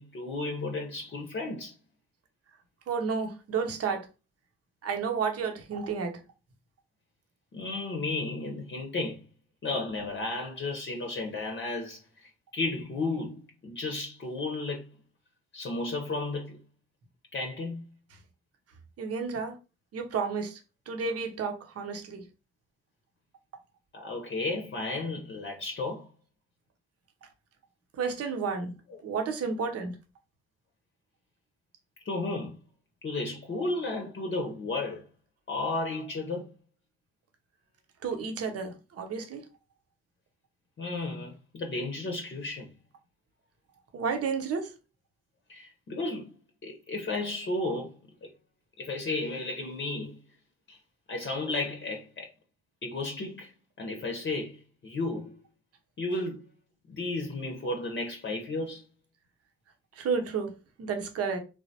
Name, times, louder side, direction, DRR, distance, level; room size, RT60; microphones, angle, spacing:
voice 1, 0.0-1.7 7.5-9.2 9.6-14.9 15.5-16.6 17.3-17.8 23.9-26.1 28.9-29.0 32.0-32.6 33.0-35.0 35.5-36.5 40.8-42.7 45.5-46.3 46.6-47.9 48.2-48.3 48.8-50.2 50.7-50.8 51.1-52.3 52.8-53.5 53.8-55.4 56.0-56.4 56.9-58.8, left 2 dB, 40° left, 0.7 m, -33 dB
voice 2, 2.9-4.1 4.8-6.2 19.0-19.6 19.9-20.6 20.9-22.2 28.0-28.7 29.0-30.0 38.0-39.4 43.9-44.7 60.0-60.5 60.8-61.4, right 5 dB, 55° right, 0.8 m, -31 dB
3.3 x 2.1 x 2.7 m
hypercardioid pair, 40°, 29 cm